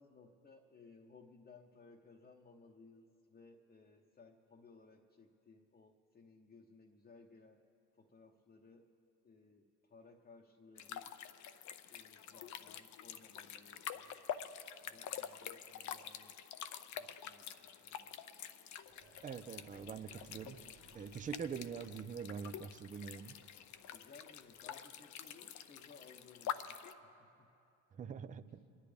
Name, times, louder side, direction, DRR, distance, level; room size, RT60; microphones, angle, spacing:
voice 1, 0.0-7.6 8.0-8.9 9.2-9.6 9.9-11.1 11.9-14.1 14.8-16.4 16.9-18.1 23.9-27.5 28.4-28.7, left 4 dB, 25° left, 0 dB, 0.9 m, -61 dB
sound 1, 10.8-26.9, left 9 dB, 55° left, 0.6 m, -47 dB
sound 2, 18.8-24.8, right 4 dB, 65° right, 1.5 m, -64 dB
voice 2, 19.2-20.6 20.9-23.4 28.0-28.4, right 7 dB, 25° right, 12 dB, 0.4 m, -44 dB
28.0 x 10.5 x 3.4 m, 2.6 s
supercardioid pair, 95°, 35 cm